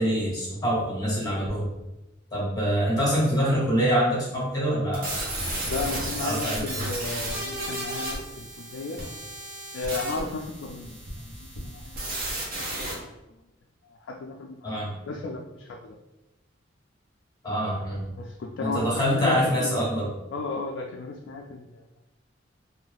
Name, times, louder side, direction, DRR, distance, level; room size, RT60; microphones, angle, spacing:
voice 1, 0.0-1.7 2.3-5.1 6.2-6.8 14.6-14.9 17.4-18.1 18.6-20.1, equal, 20° left, -6 dB, 1.1 m, -25 dB
sound 1, 4.9-12.9, right 1 dB, 45° right, 0.8 m, -33 dB
voice 2, 5.7-9.0 9.7-12.1 12.6-13.0 14.0-14.8 15.1-16.0 18.2-18.9 19.1-19.6 20.3-21.8, left 3 dB, 70° left, 1 dB, 0.3 m, -34 dB
2.6 x 2.4 x 3.2 m, 0.97 s
head